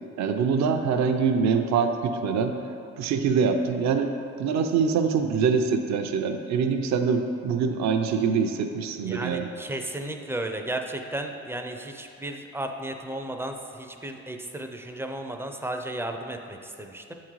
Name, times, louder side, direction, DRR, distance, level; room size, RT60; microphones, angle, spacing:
voice 1, 0.2-2.5 3.0-4.1 4.4-9.5, right 5 dB, 65° right, 6 dB, 0.5 m, -24 dB
voice 2, 8.9-17.1, right 1 dB, 10° right, 4 dB, 0.4 m, -34 dB
8.4 x 3.7 x 3.1 m, 2.5 s
cardioid pair, 90°, 30 cm